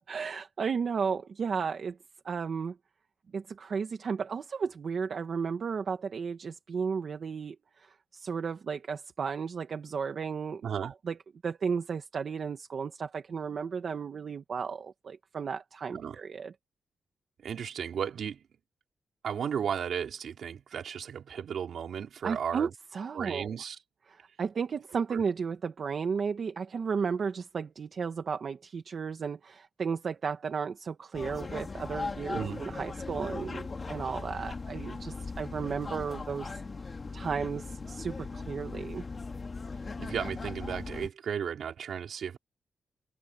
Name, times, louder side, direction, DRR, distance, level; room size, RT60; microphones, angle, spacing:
voice 1, 0.0-2.0 2.2-2.8 3.3-11.1 11.4-16.5 22.2-23.6 24.1-36.5 37.1-39.0, right 6 dB, 45° right, 1.2 m, -34 dB
voice 2, 10.6-10.9 15.9-16.2 17.4-18.4 19.2-22.7 23.1-23.8 25.1-25.2 32.3-32.6 40.0-42.4, right 8 dB, 65° right, 4.3 m, -34 dB
sound 1, 31.1-41.1, left 4 dB, 30° left, 2.8 m, -39 dB
wide cardioid pair, 170°, 0 cm